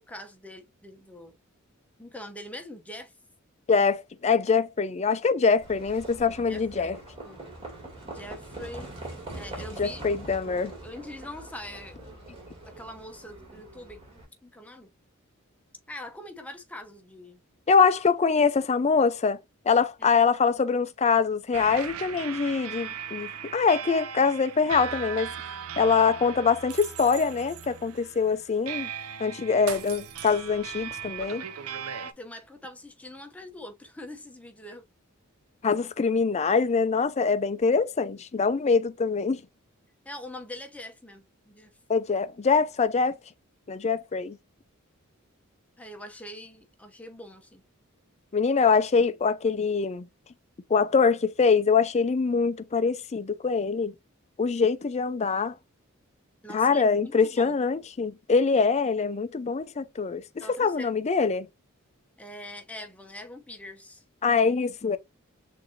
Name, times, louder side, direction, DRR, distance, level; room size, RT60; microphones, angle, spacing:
voice 1, 0.1-1.4 2.0-3.1 6.5-7.4 8.0-8.9 9.3-10.1 10.8-12.0 12.6-14.0 14.4-14.9 15.9-17.4 20.0-20.1 32.0-34.8 40.0-41.7 45.8-47.6 56.4-57.6 60.4-60.9 62.2-64.0, left 1 dB, 5° left, 0.8 m, -43 dB
voice 2, 3.7-7.0 9.8-10.7 17.7-19.4 19.7-25.3 25.8-28.9 29.2-31.4 35.6-39.4 41.9-43.2 43.7-44.4 48.3-50.1 50.7-53.9 54.4-55.5 56.5-61.5 64.2-65.0, left 5 dB, 30° left, 0.4 m, -24 dB
Livestock farm animals working animals, 5.6-14.2, right 1 dB, 30° right, 2.6 m, -43 dB
sound 1, 21.5-32.1, right 8 dB, 85° right, 0.6 m, -38 dB
6.4 x 2.7 x 2.7 m
head